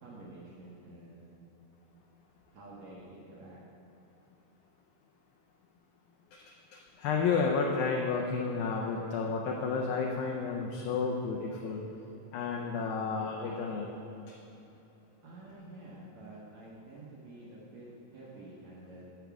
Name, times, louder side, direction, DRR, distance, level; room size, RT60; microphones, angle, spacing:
voice 1, 0.0-1.5 2.5-3.6 15.2-19.2, right 2 dB, 75° right, -6 dB, 1.6 m, -49 dB
voice 2, 6.7-11.8 12.3-13.9, left 5 dB, 80° left, -1 dB, 2.1 m, -31 dB
15.5 x 6.1 x 3.5 m, 2.9 s
omnidirectional pair, 4.8 m